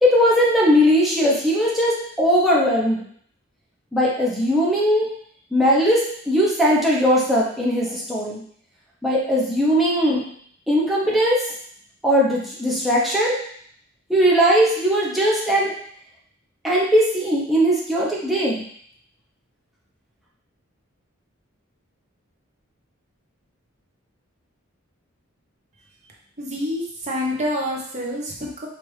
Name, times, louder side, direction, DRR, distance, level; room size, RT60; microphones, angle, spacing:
voice 1, 0.0-3.0 3.9-5.1 5.5-8.4 9.0-10.2 10.7-11.4 12.0-13.4 14.1-15.7 16.6-18.6, equal, ahead, -6 dB, 0.7 m, -19 dB
voice 2, 26.4-28.7, left 1 dB, 35° right, -2 dB, 0.7 m, -27 dB
4.6 x 2.4 x 3.2 m, 0.62 s
head